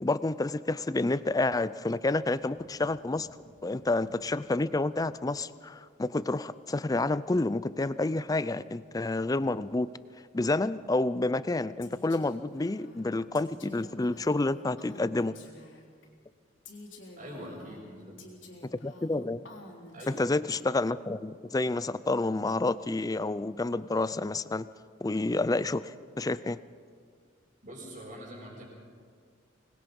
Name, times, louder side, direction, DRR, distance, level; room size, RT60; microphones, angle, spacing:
voice 1, 0.0-3.3 3.6-9.9 10.3-15.4 18.8-19.4 20.1-24.7 25.0-26.6, left 2 dB, 20° left, 16 dB, 0.4 m, -29 dB
sound 1, 2.5-5.3, left 1 dB, 55° left, 2.8 m, -58 dB
Female speech woman speaking, 11.8-16.1 16.7-20.6, left 2 dB, 80° left, 3.7 m, -50 dB
voice 2, 17.1-18.2 19.9-20.4 27.6-28.6, equal, 45° right, -9 dB, 5.4 m, -44 dB
25.0 x 20.5 x 5.3 m, 2.1 s
head